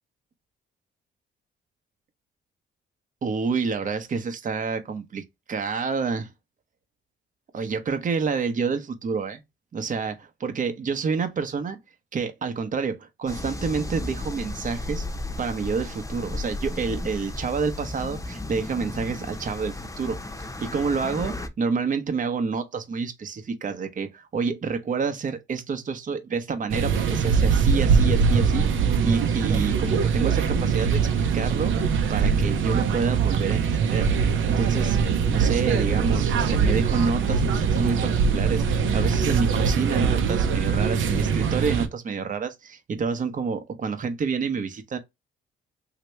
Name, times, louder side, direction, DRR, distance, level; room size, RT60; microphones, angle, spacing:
voice 1, 3.2-5.2 5.5-6.3 7.5-9.4 9.7-11.8 12.1-15.1 15.4-20.2 20.6-28.6 29.0-34.1 34.5-35.0 35.3-45.0, right 5 dB, 40° right, 0.9 m, -28 dB
sound 1, 13.3-21.5, left 2 dB, 15° left, 0.8 m, -34 dB
sound 2, 26.7-41.9, right 6 dB, 75° right, 0.8 m, -22 dB
3.2 x 2.9 x 3.1 m
cardioid pair, 90°, 20 cm